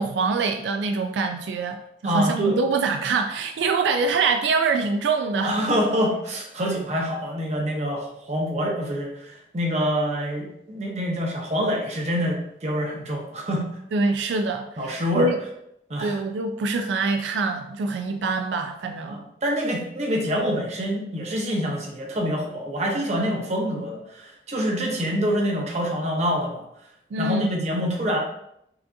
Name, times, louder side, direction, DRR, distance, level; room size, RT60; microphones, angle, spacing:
voice 1, 0.0-1.8 2.0-5.5 13.9-15.4 16.0-19.2 27.1-27.5, right 3 dB, 90° right, 5 dB, 0.3 m, -24 dB
voice 2, 2.0-2.6 5.4-13.6 14.8-15.3 15.9-16.2 19.1-26.6 27.2-28.2, equal, 40° right, -1 dB, 0.8 m, -26 dB
5.6 x 2.7 x 2.6 m, 0.78 s
head